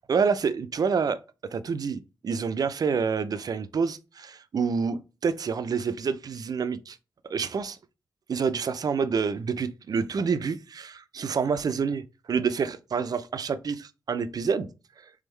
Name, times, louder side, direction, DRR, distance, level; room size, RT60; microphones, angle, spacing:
voice 1, 0.1-1.2 1.5-7.0 7.3-7.8 8.3-14.7, right 5 dB, 50° right, 0.5 m, -28 dB
3.5 x 3.4 x 3.2 m
supercardioid pair, 50°, 8 cm